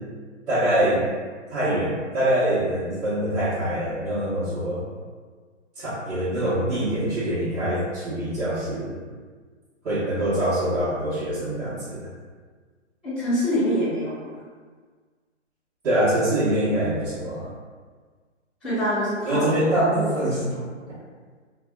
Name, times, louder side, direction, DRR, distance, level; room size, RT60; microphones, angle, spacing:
voice 1, 0.5-1.0 1.5-4.8 5.7-8.9 9.8-12.1 15.8-17.5 19.2-20.5, right 1 dB, 75° right, -13 dB, 1.1 m, -24 dB
voice 2, 13.0-14.1 18.6-20.6, equal, ahead, -15 dB, 0.9 m, -26 dB
2.5 x 2.3 x 2.3 m, 1.6 s
hypercardioid pair, 150°, 37 cm